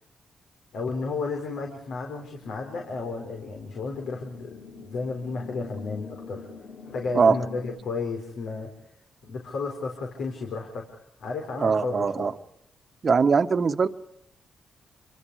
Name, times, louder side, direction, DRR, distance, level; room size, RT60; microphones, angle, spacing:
voice 1, 0.7-4.6 4.9-6.5 6.9-8.7 9.2-10.9 11.2-12.3, left 4 dB, 80° left, 2 dB, 4.4 m, -32 dB
sound 1, 2.4-7.8, left 5 dB, 65° left, 3.5 m, -45 dB
voice 2, 11.6-12.3 13.0-13.9, right 5 dB, 45° right, 9 dB, 1.2 m, -21 dB
28.0 x 24.0 x 4.9 m, 0.75 s
cardioid pair, 80°, 0 cm